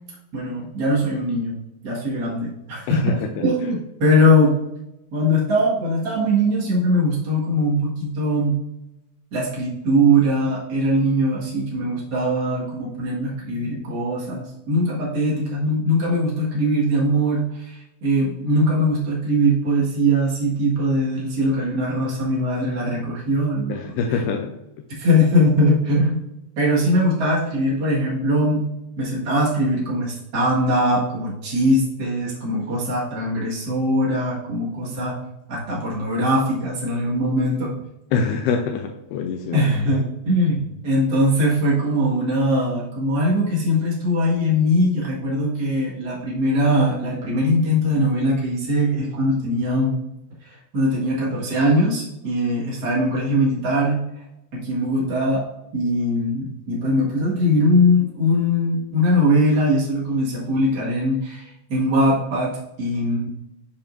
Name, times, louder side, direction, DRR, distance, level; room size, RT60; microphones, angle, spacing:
voice 1, 0.3-1.6 1.8-4.6 5.1-8.6 9.3-24.3 25.0-26.2 26.6-28.7 29.0-35.2 35.5-37.7 39.5-50.0 50.7-54.0 54.5-55.4 55.7-63.3, equal, 75° right, -5 dB, 0.9 m, -21 dB
voice 2, 2.9-3.5 23.7-24.5 38.1-39.6, left 5 dB, 85° left, 3 dB, 2.7 m, -24 dB
10.0 x 5.3 x 2.6 m, 0.90 s
omnidirectional pair, 5.0 m